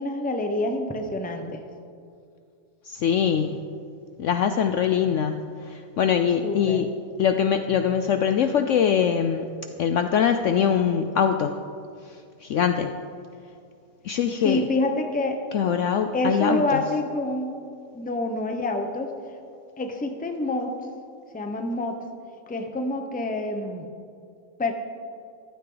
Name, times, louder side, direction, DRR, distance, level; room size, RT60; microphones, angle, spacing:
voice 1, 0.0-1.6 6.4-6.8 14.4-15.4 16.1-17.6 17.9-19.1 19.8-20.7 21.3-22.0 22.5-23.9 24.6-24.7, left 2 dB, 10° left, 4 dB, 0.6 m, -27 dB
voice 2, 2.9-3.6 4.2-6.9 7.2-9.5 9.8-11.5 12.4-12.9 14.0-14.6 15.5-16.8, left 8 dB, 70° left, 7 dB, 0.8 m, -23 dB
14.5 x 12.5 x 3.9 m, 2.4 s
omnidirectional pair, 1.7 m